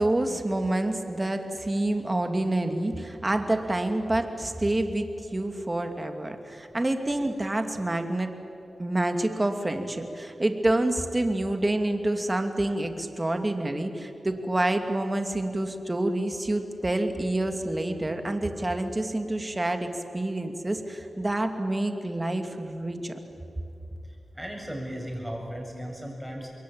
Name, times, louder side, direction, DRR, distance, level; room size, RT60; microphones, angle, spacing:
voice 1, 0.0-8.3 8.8-23.2, right 1 dB, 25° right, 6 dB, 2.6 m, -27 dB
voice 2, 24.0-26.5, equal, 5° right, 0 dB, 7.6 m, -36 dB
26.5 x 22.0 x 8.8 m, 2.8 s
cardioid pair, 50°, 0 cm